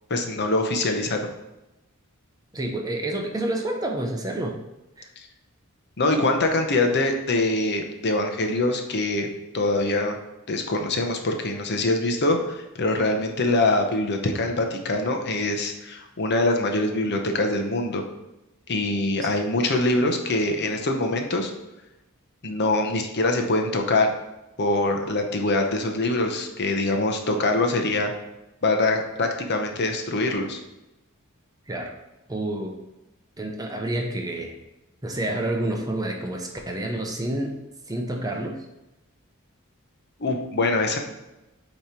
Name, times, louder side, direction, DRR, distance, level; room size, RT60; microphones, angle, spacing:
voice 1, 0.1-1.2 5.2-5.3 6.0-10.2 10.5-18.0 18.7-21.5 22.4-24.1 24.6-28.1 28.6-30.6 40.2-41.0, left 2 dB, 50° left, 4 dB, 0.8 m, -24 dB
voice 2, 2.5-4.6 5.0-5.1 19.2-19.3 31.7-32.0 32.3-32.8 33.4-34.6 35.0-37.6 37.9-38.6, right 1 dB, 15° right, 2 dB, 0.7 m, -29 dB
8.6 x 3.1 x 4.3 m, 0.96 s
head